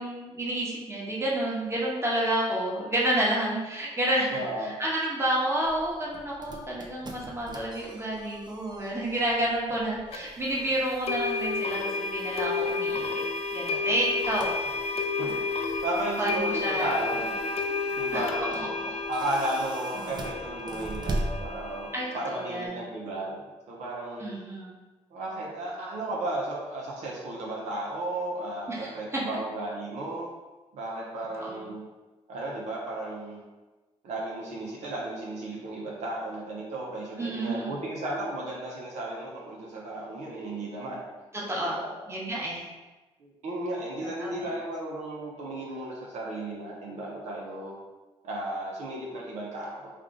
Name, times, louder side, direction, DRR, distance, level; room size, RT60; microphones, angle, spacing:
voice 1, 0.0-13.2 13.5-14.6 16.2-16.9 18.1-18.2 18.8-19.0 21.9-22.8 24.2-24.8 28.7-29.2 31.4-31.7 37.2-37.8 41.3-41.8 42.1-42.7 44.2-44.5, right 1 dB, 20° right, -5 dB, 1.2 m, -30 dB
voice 2, 4.3-4.8 15.2-15.4 15.8-17.4 18.0-18.7 19.1-21.9 22.1-23.4 23.7-24.2 25.1-30.3 30.7-31.9 32.3-33.4 34.0-41.0 41.6-41.9 43.2-47.8 48.2-49.9, right 1 dB, 80° right, -4 dB, 0.8 m, -34 dB
sound 1, 5.7-22.0, right 2 dB, 35° right, 0.6 m, -41 dB
sound 2, 10.1-10.2 11.1-22.6, left 4 dB, 60° left, 0.4 m, -31 dB
3.5 x 2.5 x 3.6 m, 1.2 s
cardioid pair, 65°, 12 cm